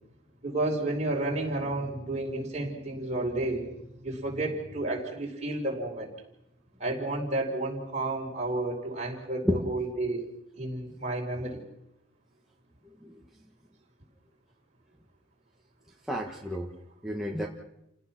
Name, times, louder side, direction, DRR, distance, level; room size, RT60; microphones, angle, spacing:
voice 1, 0.4-3.7 4.0-6.1 6.8-10.2 10.5-11.6, right 2 dB, 35° right, -1 dB, 5.1 m, -31 dB
voice 2, 16.1-16.7 17.0-17.5, equal, ahead, -2 dB, 1.6 m, -30 dB
30.0 x 17.5 x 6.1 m, 0.83 s
head